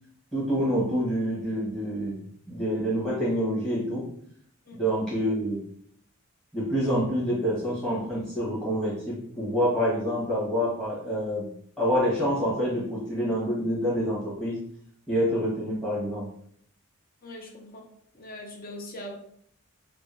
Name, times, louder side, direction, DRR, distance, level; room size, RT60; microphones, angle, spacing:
voice 1, 0.3-2.2 2.5-4.1 4.7-5.6 6.5-11.4 11.8-14.6 15.1-16.3, equal, 5° left, -6 dB, 1.1 m, -27 dB
voice 2, 17.2-17.9 18.1-19.2, left 1 dB, 40° left, 1 dB, 0.6 m, -41 dB
3.6 x 2.1 x 2.5 m, 0.65 s
head